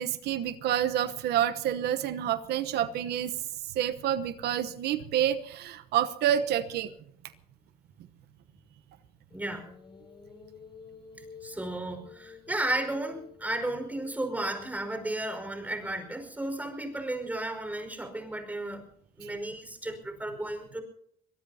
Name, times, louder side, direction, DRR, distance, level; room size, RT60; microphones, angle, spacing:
voice 1, 0.0-3.3 3.7-6.9 19.2-19.4, right 10 dB, 75° right, 12 dB, 1.0 m, -28 dB
sound 1, 9.3-16.7, left 6 dB, 30° left, 6.9 m, -51 dB
voice 2, 9.3-9.6 11.4-18.8 19.2-20.8, right 1 dB, 10° right, 6 dB, 5.1 m, -34 dB
23.5 x 22.0 x 2.8 m, 0.71 s
cardioid pair, 110°, 17 cm